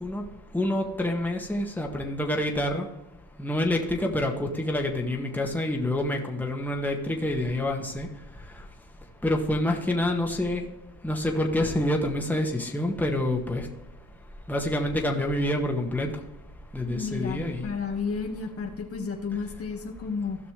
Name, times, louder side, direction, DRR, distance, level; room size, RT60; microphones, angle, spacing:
voice 1, 0.5-2.9 3.4-8.1 9.2-10.6 11.0-13.7 14.5-16.1 16.7-17.7, left 1 dB, 5° left, 1 dB, 1.7 m, -27 dB
voice 2, 16.9-20.4, left 5 dB, 50° left, 2 dB, 1.6 m, -32 dB
16.0 x 6.0 x 3.3 m, 0.95 s
cardioid pair, 90°, 30 cm